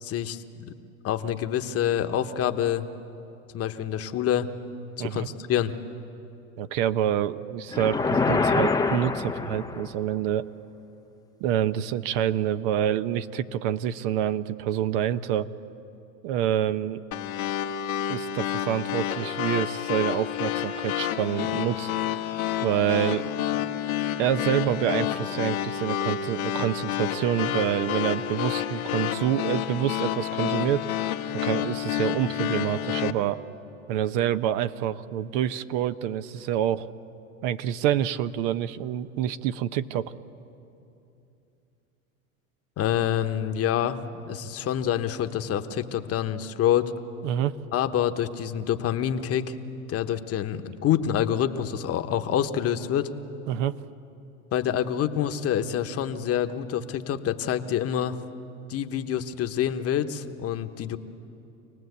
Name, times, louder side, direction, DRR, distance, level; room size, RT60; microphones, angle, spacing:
voice 1, 0.0-0.7 1.0-2.9 3.5-4.5 5.0-5.8 42.8-46.9 47.7-49.6 49.9-53.1 54.5-58.2 58.7-61.0, left 10 dB, 35° left, 9 dB, 1.1 m, -27 dB
voice 2, 6.6-10.5 11.4-15.5 16.2-17.0 18.1-21.9 22.6-23.2 24.2-30.9 31.3-33.4 33.9-36.9 37.4-40.1 47.2-47.6 53.5-53.8, right 10 dB, 60° right, 12 dB, 0.9 m, -27 dB
sound 1, 7.7-10.0, left 4 dB, 10° left, 0.7 m, -25 dB
sound 2, 17.1-33.1, left 11 dB, 80° left, 1.3 m, -29 dB
26.5 x 18.5 x 8.1 m, 2.8 s
hypercardioid pair, 110°, 42 cm